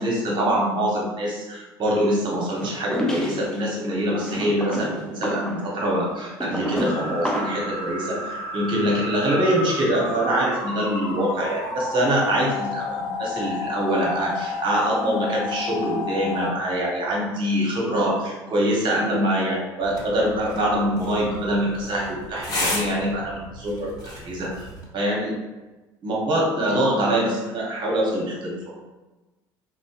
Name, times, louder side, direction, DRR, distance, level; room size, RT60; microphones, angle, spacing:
voice 1, 0.0-24.7 24.9-25.3 26.0-28.7, right 1 dB, 50° right, -3 dB, 0.9 m, -24 dB
sound 1, 2.6-3.6 4.2-7.7, equal, 5° left, 0.4 m, -29 dB
sound 2, 6.8-16.5, left 3 dB, 65° left, 0.7 m, -31 dB
sound 3, 19.8-24.8, left 1 dB, 35° left, 1.0 m, -33 dB
2.7 x 2.0 x 2.8 m, 1.1 s
supercardioid pair, 80°, 10 cm